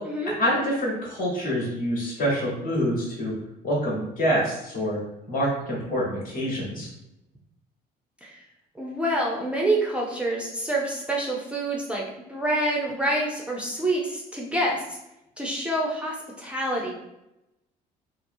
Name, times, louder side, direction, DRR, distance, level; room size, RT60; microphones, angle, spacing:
voice 1, 0.4-3.3 3.6-5.0 5.3-6.9, equal, 55° left, -4 dB, 1.2 m, -26 dB
voice 2, 8.8-12.0 12.3-14.8 15.4-16.9, right 1 dB, 5° right, -3 dB, 0.4 m, -27 dB
2.6 x 2.0 x 2.6 m, 0.90 s
cardioid pair, 110°, 17 cm